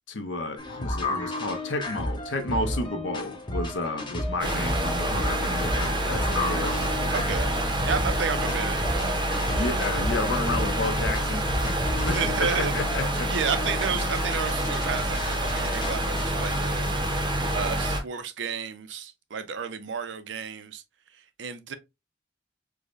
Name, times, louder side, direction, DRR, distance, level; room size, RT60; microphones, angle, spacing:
voice 1, 0.1-6.8 9.5-13.3, left 2 dB, 85° left, 0.7 m, -31 dB
sound 1, 0.6-17.0, left 1 dB, 25° left, 0.6 m, -33 dB
sound 2, 4.4-18.0, right 1 dB, 25° right, 0.6 m, -27 dB
voice 2, 7.1-7.5 7.8-9.2 9.5-9.7 12.1-12.7 13.3-16.8 17.5-20.8 21.1-21.8, right 6 dB, 80° right, 0.5 m, -32 dB
4.7 x 2.1 x 2.4 m
head